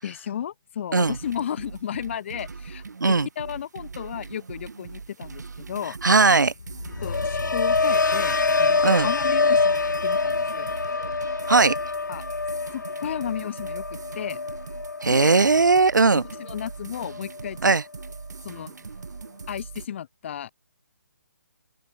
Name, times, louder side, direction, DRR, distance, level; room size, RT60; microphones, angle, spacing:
voice 1, 0.0-6.0 7.0-10.7 12.1-12.3 12.7-14.4 15.1-15.3 16.1-17.7 18.4-18.8 19.5-20.5, left 9 dB, 40° left, 6.0 m, -34 dB
Club Handover, 1.0-19.9, right 4 dB, 70° right, 5.6 m, -41 dB
voice 2, 6.0-6.5 8.8-9.1 11.5-11.8 15.0-16.2 17.6-17.8, right 4 dB, 90° right, 0.8 m, -18 dB
sound 1, 6.6-16.7 17.0-17.5, left 4 dB, 90° left, 0.8 m, -26 dB
open air
figure-of-eight pair, 155°, 10 cm